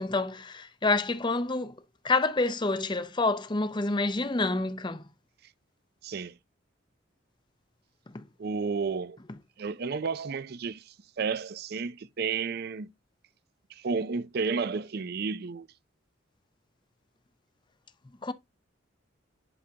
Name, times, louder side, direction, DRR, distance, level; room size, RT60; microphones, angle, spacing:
voice 1, 0.0-1.8 2.0-5.0 8.1-8.2 18.2-18.3, left 3 dB, 25° left, 0.6 m, -28 dB
voice 2, 6.0-6.4 8.4-9.2 9.6-12.9 13.7-15.7, right 5 dB, 50° right, 0.5 m, -32 dB
11.0 x 3.6 x 2.8 m
head